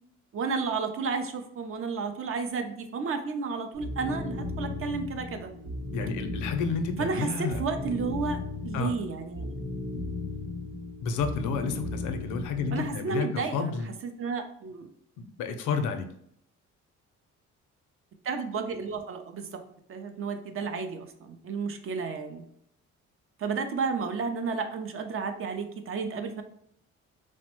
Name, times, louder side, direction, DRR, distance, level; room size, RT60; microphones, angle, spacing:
voice 1, 0.3-5.5 7.0-9.5 12.7-13.8 14.2-14.9 18.2-19.6 19.9-22.4 23.4-26.4, right 4 dB, 45° right, 7 dB, 0.5 m, -32 dB
sound 1, 3.7-13.0, left 2 dB, 90° right, 1.2 m, -36 dB
voice 2, 5.9-7.6 8.7-8.9 11.0-13.9 15.2-16.1, left 5 dB, 80° left, 7 dB, 0.5 m, -30 dB
3.1 x 2.1 x 2.9 m, 0.72 s
cardioid pair, 90°, 30 cm